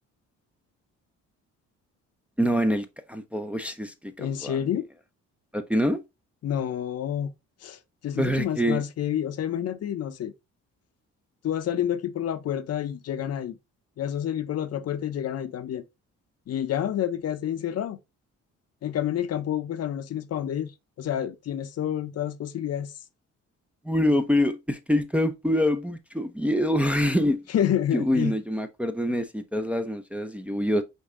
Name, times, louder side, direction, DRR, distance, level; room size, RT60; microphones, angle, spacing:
voice 1, 2.4-4.6 5.5-6.0 8.2-8.8 23.8-27.4 27.9-30.8, equal, 5° right, 0.5 m, -25 dB
voice 2, 4.2-4.9 6.4-7.3 7.6-10.3 11.4-13.6 14.0-15.8 16.5-18.0 18.8-20.7 21.0-22.9 27.5-28.3, left 10 dB, 55° left, 0.6 m, -29 dB
5.3 x 2.7 x 3.7 m
cardioid pair, 90°, 30 cm